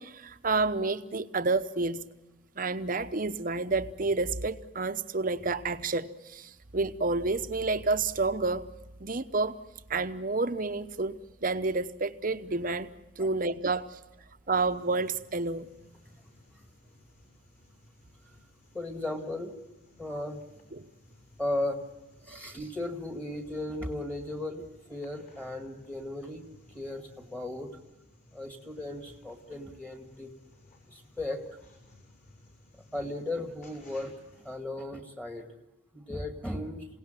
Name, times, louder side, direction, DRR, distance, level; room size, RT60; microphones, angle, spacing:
voice 1, 0.0-2.1 2.6-8.6 9.0-9.6 9.9-12.9 13.2-14.0 14.5-15.7 20.7-20.9 22.3-22.4, right 3 dB, 45° right, 10 dB, 0.9 m, -29 dB
sound 1, 14.7-34.6, left 1 dB, 40° left, 6.7 m, -59 dB
voice 2, 18.7-19.5 20.0-20.4 21.4-21.8 22.3-27.8 28.3-30.3 30.9-31.4 32.7-35.5 35.9-36.9, left 1 dB, 5° left, 4 dB, 2.0 m, -36 dB
28.0 x 17.5 x 9.0 m, 1.0 s
head